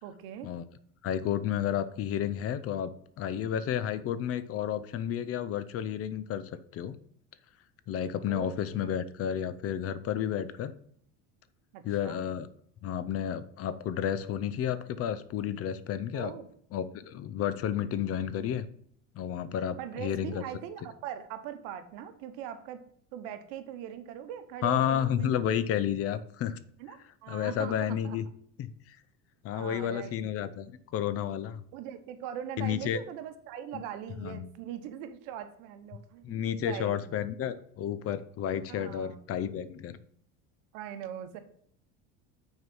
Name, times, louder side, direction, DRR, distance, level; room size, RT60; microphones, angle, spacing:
voice 1, 0.0-0.5 8.3-9.0 11.7-12.2 16.1-16.5 19.8-22.8 23.1-25.4 26.8-28.2 29.5-30.2 31.7-37.0 38.7-39.2 40.7-41.4, right 10 dB, 75° right, 9 dB, 1.0 m, -41 dB
voice 2, 1.0-2.9 3.2-6.9 7.9-10.7 11.8-12.5 12.8-16.3 16.7-18.6 19.2-20.4 24.6-26.6 27.3-28.2 28.6-29.0 29.4-31.6 32.6-33.0 33.7-33.8 34.2-34.5 36.2-40.0, left 9 dB, 40° left, 14 dB, 0.6 m, -31 dB
6.3 x 4.6 x 5.4 m, 0.63 s
supercardioid pair, 120°, 35 cm